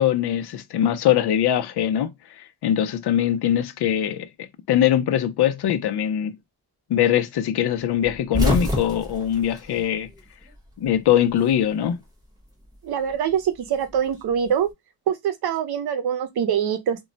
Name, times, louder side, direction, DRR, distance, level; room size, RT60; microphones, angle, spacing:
voice 1, 0.0-6.4 6.9-10.1 10.8-12.0, left 10 dB, 85° left, 0.5 m, -22 dB
sound 1, 8.0-10.6 10.8-11.9 13.1-14.6, equal, 10° right, 0.8 m, -28 dB
voice 2, 12.8-14.7 15.1-17.1, right 8 dB, 75° right, 0.7 m, -24 dB
2.2 x 2.1 x 3.8 m
wide cardioid pair, 170°, 39 cm